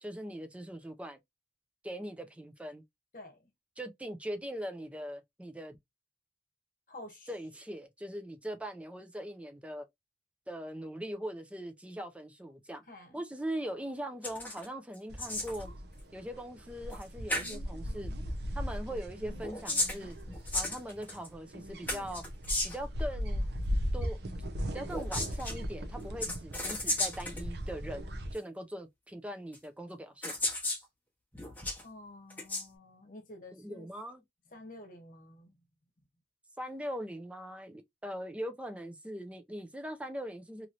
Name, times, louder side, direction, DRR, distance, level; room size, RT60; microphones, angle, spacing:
voice 1, 0.0-1.2 1.8-2.8 3.8-5.8 7.3-9.8 10.5-12.8 13.1-15.7 16.1-18.1 18.6-20.2 20.5-22.2 22.6-23.5 23.9-24.2 24.7-30.3 33.5-34.2 36.6-40.7, equal, 5° right, 0.4 m, -41 dB
voice 2, 6.9-7.3 12.9-13.2 31.8-33.9 34.5-35.6, left 1 dB, 50° left, 1.0 m, -50 dB
sound 1, 14.2-14.7 14.9-15.6 16.9-17.0 17.3-17.6 19.3-21.3 21.9-22.9 24.8-25.6 26.2-27.4 28.3-28.4 29.5-29.6 30.2-30.8 31.3-31.8 32.3-32.6, left 2 dB, 10° left, 0.9 m, -34 dB
sound 2, 15.1-28.3, equal, 65° right, 0.6 m, -38 dB
3.0 x 2.8 x 2.5 m
head